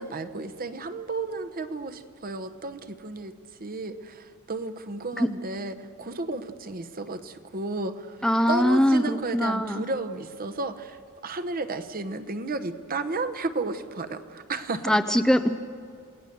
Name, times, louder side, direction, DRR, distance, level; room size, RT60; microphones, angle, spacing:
voice 1, 0.0-3.3 3.6-8.2 8.5-15.0, right 3 dB, 40° right, 10 dB, 1.0 m, -33 dB
voice 2, 8.2-9.8 14.8-15.5, equal, 5° left, 9 dB, 0.5 m, -22 dB
29.5 x 18.0 x 6.9 m, 2.3 s
head